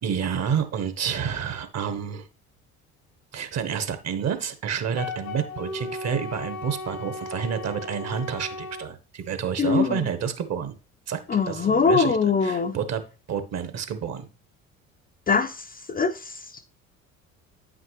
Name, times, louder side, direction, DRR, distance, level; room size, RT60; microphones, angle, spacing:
voice 1, 0.0-2.3 3.3-10.8 11.1-11.2 11.5-13.0 13.3-14.3, right 7 dB, 40° right, 1.4 m, -29 dB
Wind instrument woodwind instrument, 4.9-8.9, left 2 dB, 75° left, 1.4 m, -36 dB
voice 2, 9.6-10.1 11.3-12.8 15.3-16.6, left 5 dB, 20° left, 0.7 m, -23 dB
9.2 x 5.9 x 3.3 m
figure-of-eight pair, 55°, 41 cm